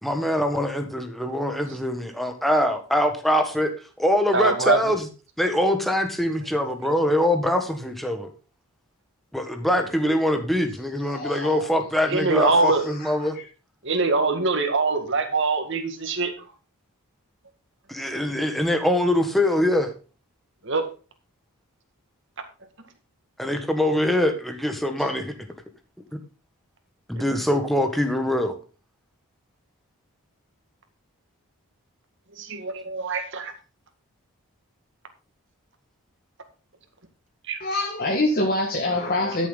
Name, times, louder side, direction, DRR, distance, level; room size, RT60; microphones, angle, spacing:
voice 1, 0.0-3.7 4.0-5.1 5.4-8.3 9.3-13.3 17.9-19.9 23.4-25.3 27.1-28.5, left 1 dB, ahead, 5 dB, 1.5 m, -23 dB
voice 2, 4.3-4.8 12.1-12.8 13.8-16.3 20.7-20.9 32.4-33.5 37.5-37.6, right 3 dB, 55° right, 6 dB, 2.1 m, -23 dB
voice 3, 11.0-11.6 12.4-13.4 37.6-39.5, left 1 dB, 40° left, 2 dB, 1.8 m, -26 dB
12.5 x 7.3 x 4.0 m, 0.34 s
head